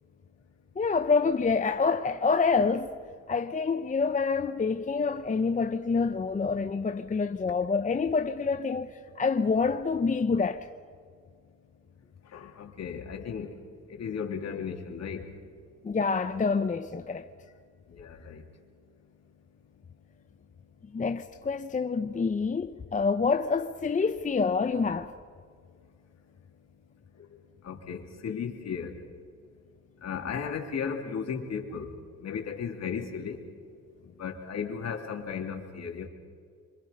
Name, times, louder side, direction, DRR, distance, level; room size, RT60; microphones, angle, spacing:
voice 1, 0.8-3.0 3.3-10.7 15.8-17.3 20.9-25.1, left 4 dB, 25° left, 0.7 m, -27 dB
voice 2, 12.3-13.5 13.9-15.3 17.9-18.4 27.2-27.3 27.6-29.0 30.0-31.9 32.2-33.4 34.2-36.1, left 6 dB, 60° left, 3.3 m, -35 dB
26.0 x 25.0 x 5.4 m
cardioid pair, 90°, 30 cm